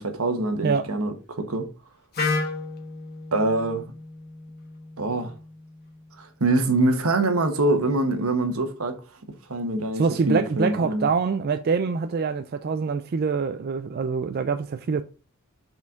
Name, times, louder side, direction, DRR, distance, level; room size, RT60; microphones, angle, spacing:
voice 1, 0.0-1.7 3.3-3.9 5.0-5.3 6.2-9.0 9.5-11.1, right 2 dB, 85° right, 1.1 m, -24 dB
Wind instrument woodwind instrument, 2.1-6.0, left 3 dB, 50° left, 1.3 m, -33 dB
voice 2, 9.9-15.0, right 5 dB, 45° right, 0.4 m, -25 dB
5.9 x 4.4 x 3.7 m
head